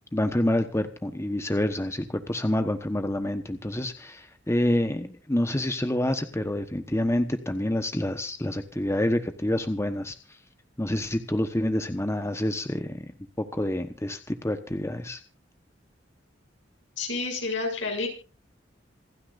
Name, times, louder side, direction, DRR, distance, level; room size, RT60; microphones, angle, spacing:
voice 1, 0.1-10.1 10.8-13.1 13.4-15.2, left 1 dB, 15° left, 8 dB, 1.1 m, -27 dB
voice 2, 17.0-18.1, left 3 dB, 80° left, 3 dB, 7.2 m, -29 dB
27.5 x 9.9 x 2.6 m, 0.33 s
head